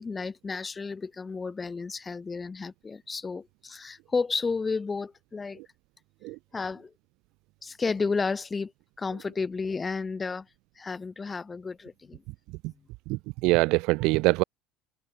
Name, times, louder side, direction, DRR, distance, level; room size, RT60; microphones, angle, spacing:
voice 1, 0.0-5.6 6.5-6.9 7.6-8.7 9.0-10.5 10.8-12.2, left 4 dB, 15° left, 3.5 m, -32 dB
voice 2, 13.1-14.4, right 23 dB, 65° right, 0.4 m, -23 dB
cardioid pair, 145°, 0 cm